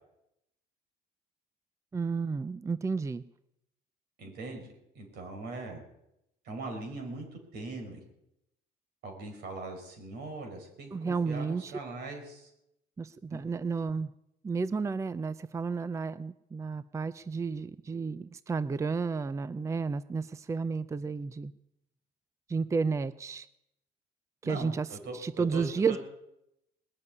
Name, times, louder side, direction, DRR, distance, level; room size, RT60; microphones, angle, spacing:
voice 1, 1.9-3.2 10.9-11.7 13.0-14.1 14.4-21.5 22.5-23.5 24.4-24.9 25.1-26.0, right 5 dB, 15° right, 16 dB, 0.5 m, -32 dB
voice 2, 4.2-4.7 5.0-5.8 6.5-8.0 9.0-12.5 13.3-13.4 24.4-26.0, right 2 dB, 75° right, 4 dB, 5.2 m, -41 dB
20.0 x 7.6 x 9.6 m, 0.83 s
cardioid pair, 110°, 17 cm